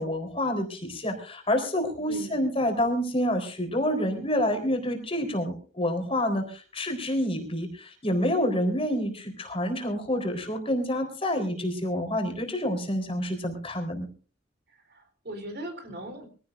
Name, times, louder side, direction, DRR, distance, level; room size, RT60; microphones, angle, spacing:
voice 1, 0.0-14.1, left 1 dB, 30° left, 5 dB, 3.9 m, -28 dB
voice 2, 2.1-2.5 14.9-16.3, right 1 dB, 60° right, 7 dB, 3.7 m, -39 dB
23.5 x 16.0 x 2.6 m, 0.38 s
head